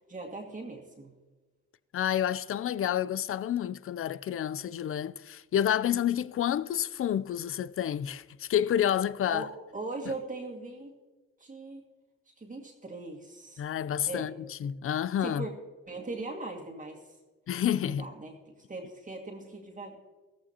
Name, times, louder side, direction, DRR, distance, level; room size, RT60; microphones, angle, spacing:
voice 1, 0.1-1.1 9.3-10.9 11.4-11.8 12.4-13.6 14.1-14.3 15.2-15.5 15.9-17.0 17.8-20.0, right 3 dB, 25° right, 2.0 m, -40 dB
voice 2, 1.9-9.5 13.6-15.5 17.5-18.1, left 10 dB, 45° left, 0.5 m, -29 dB
15.0 x 13.5 x 2.9 m
cardioid pair, 90°, 30 cm